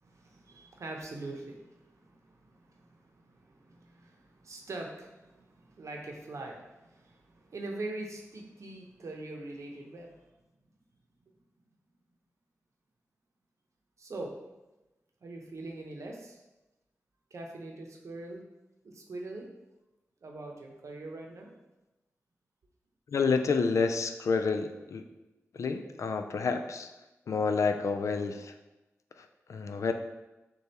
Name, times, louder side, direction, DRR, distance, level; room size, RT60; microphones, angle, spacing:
voice 1, 0.0-10.3 11.2-11.3 14.0-14.3 15.2-16.4 17.3-18.4 18.8-19.5 20.2-21.5, right 2 dB, 70° right, 1 dB, 0.7 m, -43 dB
voice 2, 23.1-25.0 25.5-26.9 27.3-28.5 29.2-29.9, left 4 dB, 70° left, 7 dB, 0.4 m, -29 dB
6.5 x 2.4 x 2.9 m, 1.0 s
cardioid pair, 50°, 5 cm